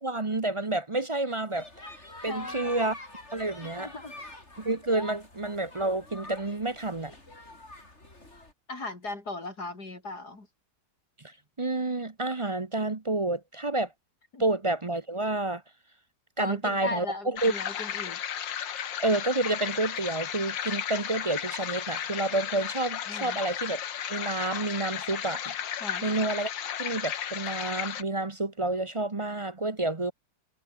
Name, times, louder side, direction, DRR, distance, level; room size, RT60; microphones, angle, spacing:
voice 1, 0.0-3.0 3.3-3.9 4.6-7.1 11.2-13.9 14.4-15.6 16.4-17.5 19.0-23.8 24.1-25.4 26.0-26.5 26.8-30.1, right 2 dB, 25° right, 0.7 m, -29 dB
sound 1, 1.5-8.5, left 2 dB, 35° left, 6.0 m, -45 dB
voice 2, 2.3-2.8 3.6-4.1 8.7-10.5 14.3-14.4 16.4-18.2 23.1-23.4 25.8-26.1, left 2 dB, 60° left, 5.4 m, -37 dB
sound 2, 17.4-28.0, left 9 dB, 90° left, 2.0 m, -34 dB
omnidirectional pair, 1.9 m